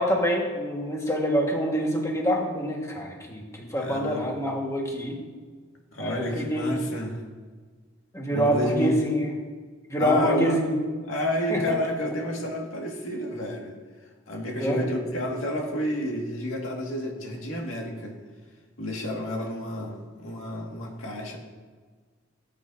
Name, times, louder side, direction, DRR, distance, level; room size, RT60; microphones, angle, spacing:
voice 1, 0.0-5.2 6.0-6.7 8.1-9.3 9.9-10.8 11.5-11.6 14.6-14.8, equal, 15° left, -1 dB, 1.6 m, -26 dB
voice 2, 3.8-4.4 5.9-7.2 8.3-9.0 10.0-10.6 11.1-13.7 14.3-18.1 18.8-21.4, left 1 dB, 90° left, 0 dB, 2.0 m, -30 dB
18.0 x 8.6 x 2.7 m, 1.5 s
head